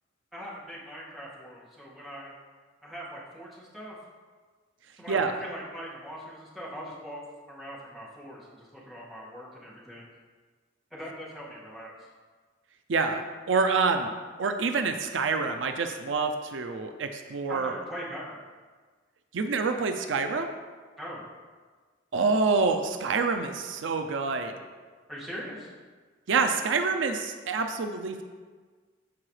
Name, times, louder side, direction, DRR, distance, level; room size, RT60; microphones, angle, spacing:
voice 1, 0.3-2.3 2.8-4.0 5.0-10.1 10.9-12.1 17.5-18.4 21.0-21.2 25.1-25.7, equal, ahead, -7 dB, 1.9 m, -41 dB
voice 2, 5.1-5.4 12.9-13.2 13.5-14.1 14.4-17.7 19.3-20.5 22.1-24.5 26.3-28.2, right 4 dB, 75° right, 6 dB, 0.5 m, -27 dB
13.5 x 4.7 x 3.2 m, 1.5 s
head